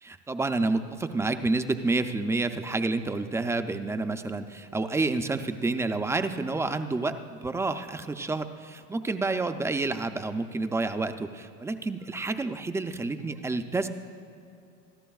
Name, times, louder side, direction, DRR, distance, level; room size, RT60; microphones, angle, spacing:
voice 1, 0.0-13.9, right 3 dB, 10° right, 8 dB, 0.4 m, -29 dB
27.0 x 13.0 x 2.3 m, 2.7 s
supercardioid pair, 125°, 37 cm